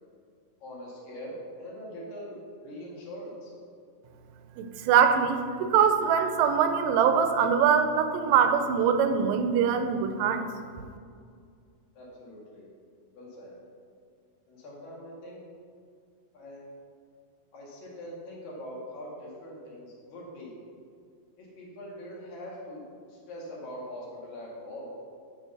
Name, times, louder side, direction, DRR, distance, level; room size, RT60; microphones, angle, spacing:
voice 1, 0.6-2.3 2.6-3.5 12.0-12.7 13.1-13.6 14.5-15.4 16.3-16.7 17.5-20.6 21.4-22.8 23.1-24.9, equal, 80° left, -5 dB, 3.6 m, -42 dB
voice 2, 4.6-10.5, right 7 dB, 80° right, 8 dB, 2.1 m, -23 dB
8.9 x 4.0 x 6.6 m, 2.2 s
omnidirectional pair, 4.0 m